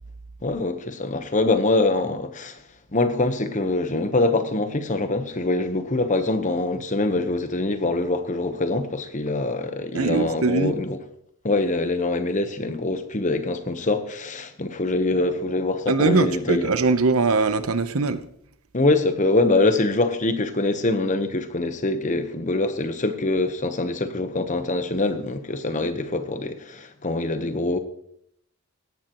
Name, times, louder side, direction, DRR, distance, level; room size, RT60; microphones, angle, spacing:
voice 1, 0.4-2.6 2.9-11.0 11.4-16.7 18.7-27.8, left 2 dB, 35° left, 1.0 m, -24 dB
voice 2, 9.9-10.8 15.9-18.2, right 3 dB, 80° right, 0.9 m, -21 dB
17.5 x 11.5 x 3.0 m
head